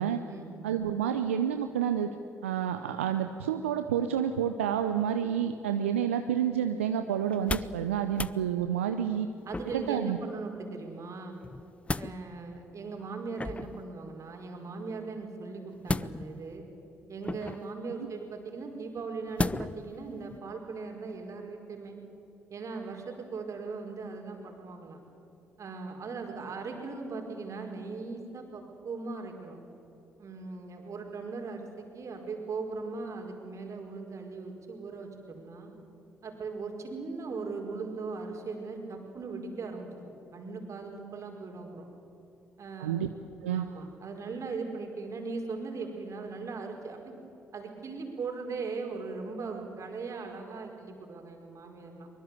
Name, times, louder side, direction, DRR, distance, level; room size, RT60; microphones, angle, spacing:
voice 1, 0.6-2.1 2.4-9.3 9.7-10.2 42.8-43.1 43.4-43.7, right 9 dB, 85° right, 8 dB, 0.7 m, -29 dB
sound 1, 7.3-7.8 8.1-8.4 9.5-10.0 11.4-12.1 13.4-13.8 15.8-16.5 17.2-17.7 19.4-19.9 20.3-20.4, left 2 dB, 20° left, 0.7 m, -33 dB
voice 2, 9.5-11.4 12.0-16.7 17.1-22.0 22.5-25.0 25.6-29.6 30.2-35.7 36.2-41.9 42.6-43.0 43.5-47.2 47.5-52.1, right 4 dB, 50° right, 2 dB, 4.7 m, -39 dB
23.5 x 22.0 x 8.3 m, 2.9 s
hypercardioid pair, 45°, 7 cm